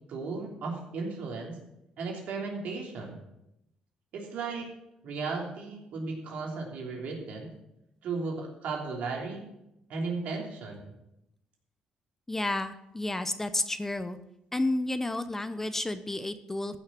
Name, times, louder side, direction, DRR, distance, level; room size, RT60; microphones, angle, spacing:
voice 1, 0.1-1.5 2.0-3.2 4.1-4.7 5.0-7.5 8.0-9.5 9.9-10.9, right 4 dB, 70° right, 0 dB, 3.2 m, -35 dB
voice 2, 12.3-14.2 14.5-16.8, left 2 dB, 15° left, 11 dB, 0.7 m, -31 dB
14.5 x 6.6 x 6.0 m, 0.85 s
cardioid pair, 110°, 3 cm